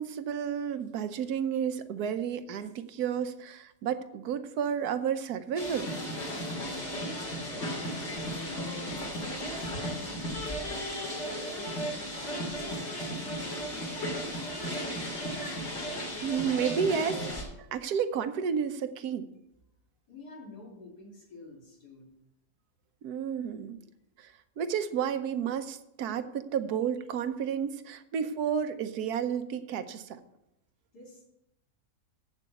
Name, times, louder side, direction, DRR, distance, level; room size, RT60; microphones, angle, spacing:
voice 1, 0.0-5.9 16.2-17.2 17.7-19.2 23.0-23.8 24.2-30.2, right 7 dB, 80° right, 11 dB, 1.3 m, -31 dB
sound 1, 5.6-17.4, equal, 45° left, 3.0 m, -35 dB
voice 2, 6.6-10.9 11.2-14.7 20.1-22.1 30.9-31.2, left 2 dB, 85° left, -1 dB, 3.1 m, -49 dB
7.9 x 6.9 x 8.0 m, 0.85 s
omnidirectional pair, 1.6 m